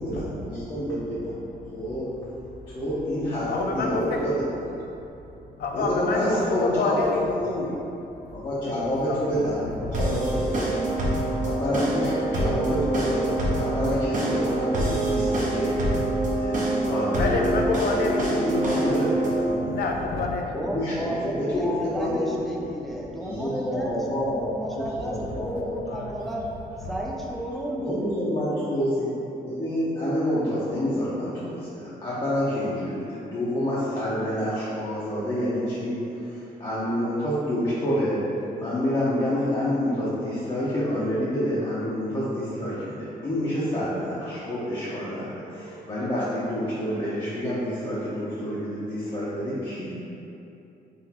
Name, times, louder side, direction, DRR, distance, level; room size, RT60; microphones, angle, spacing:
voice 1, 0.0-1.3 1.7-2.1 2.7-4.8 5.7-7.0 7.3-7.8 8.3-10.9 11.4-15.8 16.3-17.5 18.1-18.2 18.4-20.0 20.5-22.5 23.2-25.7 27.7-29.1 29.4-38.2 38.6-49.9, equal, 30° left, -11 dB, 0.7 m, -28 dB
voice 2, 3.5-4.3 5.6-7.3 8.6-8.8 9.1-9.3 9.8-9.9 16.2-16.3 17.2-18.3 19.5-20.5 25.9-26.1, left 3 dB, 80° left, 1 dB, 0.5 m, -28 dB
sound 1, 9.9-19.5, right 1 dB, 55° right, 0.8 m, -25 dB
voice 3, 20.5-24.0 24.2-26.5 26.9-28.0, equal, ahead, -3 dB, 0.4 m, -33 dB
3.9 x 2.6 x 4.2 m, 2.9 s
cardioid pair, 145°, 16 cm